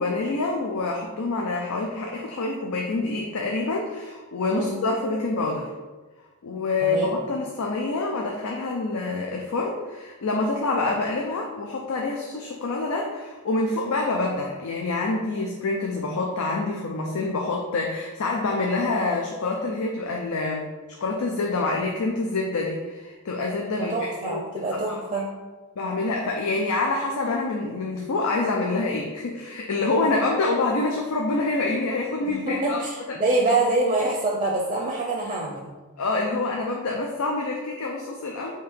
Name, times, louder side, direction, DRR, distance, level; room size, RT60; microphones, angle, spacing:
voice 1, 0.0-5.7 6.4-20.7 21.0-23.9 24.2-24.6 24.9-25.0 25.8-32.8 33.1-33.2 36.0-38.6, left 3 dB, 75° left, 0 dB, 0.5 m, -26 dB
voice 2, 6.8-7.1 23.8-25.3 32.2-35.7, right 2 dB, 25° right, -1 dB, 0.5 m, -25 dB
3.6 x 2.8 x 4.6 m, 1.2 s
head